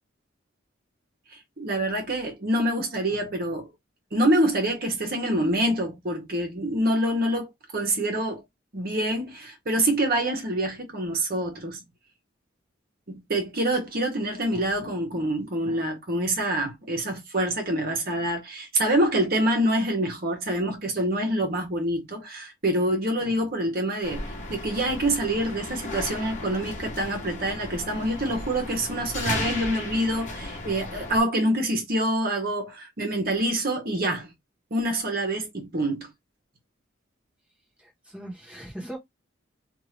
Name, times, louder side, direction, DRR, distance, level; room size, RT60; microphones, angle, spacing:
voice 1, 1.6-3.7 4.1-8.4 8.7-11.8 13.1-34.3 34.7-36.1, right 1 dB, 50° right, 1.1 m, -26 dB
sound 1, 24.0-31.2, left 2 dB, 40° left, 1.0 m, -35 dB
voice 2, 37.8-39.0, right 1 dB, 5° right, 1.2 m, -39 dB
2.6 x 2.6 x 3.2 m
head